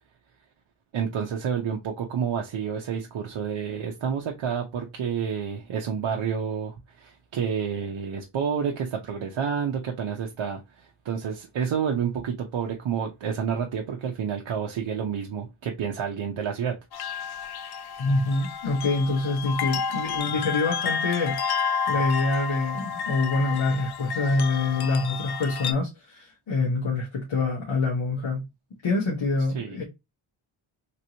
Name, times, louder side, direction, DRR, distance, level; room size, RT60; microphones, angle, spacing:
voice 1, 0.9-16.8 29.5-29.8, right 7 dB, 65° right, 0.7 m, -29 dB
sound 1, 16.9-25.7, left 6 dB, 55° left, 0.5 m, -30 dB
voice 2, 18.0-28.4 28.8-29.8, left 3 dB, 70° left, 1.1 m, -26 dB
3.3 x 2.9 x 2.7 m
wide cardioid pair, 125°, 49 cm